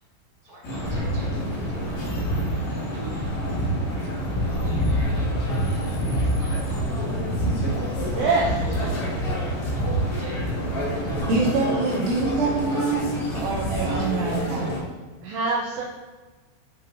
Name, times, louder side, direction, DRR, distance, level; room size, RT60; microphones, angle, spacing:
voice 1, 0.4-1.3 1.9-2.1 2.5-2.6 2.9-3.3 3.9-5.6 6.1-6.8 7.4-8.3 8.8-8.9 9.4-10.4 10.8-11.3 12.9-13.0 13.7-14.1, right 1 dB, 85° left, -10 dB, 0.9 m, -47 dB
sound 1, 0.6-14.8, equal, 70° left, 1.7 m, -26 dB
voice 2, 8.1-8.6 11.7-11.9 15.2-15.8, right 3 dB, 90° right, -2 dB, 2.5 m, -25 dB
voice 3, 11.3-14.7, right 3 dB, 70° right, -5 dB, 3.9 m, -25 dB
9.0 x 5.3 x 2.7 m, 1.2 s
omnidirectional pair, 5.9 m